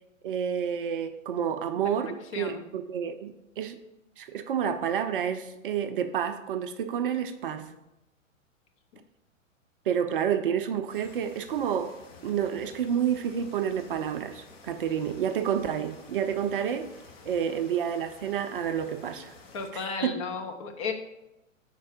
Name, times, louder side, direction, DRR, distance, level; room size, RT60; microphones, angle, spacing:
voice 1, 0.2-3.8 4.2-7.7 9.9-11.9 12.2-16.9 17.3-19.3 20.0-20.1, right 8 dB, 45° right, 9 dB, 0.5 m, -29 dB
voice 2, 2.3-2.7 7.4-7.8 12.1-12.2 19.5-20.9, left 4 dB, 25° left, 4 dB, 0.4 m, -34 dB
sound 1, 10.9-19.7, left 4 dB, 45° left, 1.3 m, -52 dB
4.6 x 4.4 x 5.5 m, 0.91 s
figure-of-eight pair, 110°, 40 cm